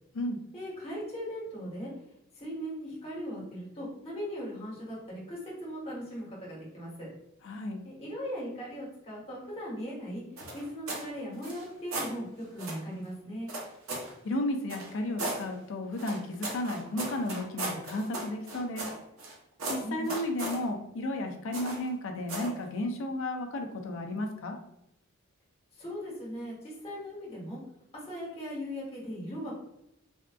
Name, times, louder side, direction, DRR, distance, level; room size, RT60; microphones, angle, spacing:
voice 1, 0.5-1.9 2.4-7.1 7.8-10.2 10.5-13.5 19.8-20.1 25.8-27.6 27.9-29.6, equal, 30° left, -5 dB, 1.3 m, -38 dB
voice 2, 7.4-7.8 14.2-18.9 19.7-24.6, left 1 dB, 65° left, 4 dB, 0.4 m, -33 dB
sound 1, 10.4-11.1 11.4-12.1 12.6-12.8 13.5-14.1 14.7-15.4 16.0-19.3 19.6-20.6 21.5-21.9 22.3-22.6, right 2 dB, 90° right, 0.8 m, -36 dB
3.4 x 2.5 x 2.3 m, 0.81 s
head